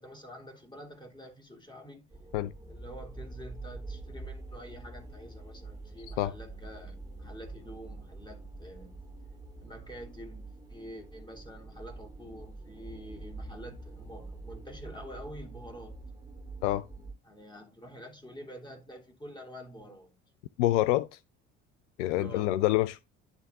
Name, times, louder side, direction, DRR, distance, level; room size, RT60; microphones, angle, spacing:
voice 1, 0.0-2.0 2.7-9.0 9.6-16.0 17.2-20.1 22.2-22.5, equal, 10° left, 3.0 m, -47 dB
sound 1, 2.1-17.1, right 3 dB, 10° right, 2.3 m, -45 dB
voice 2, 20.6-21.1 22.0-23.0, left 15 dB, 70° left, 0.5 m, -26 dB
11.0 x 3.6 x 3.5 m
figure-of-eight pair, 55°, 37 cm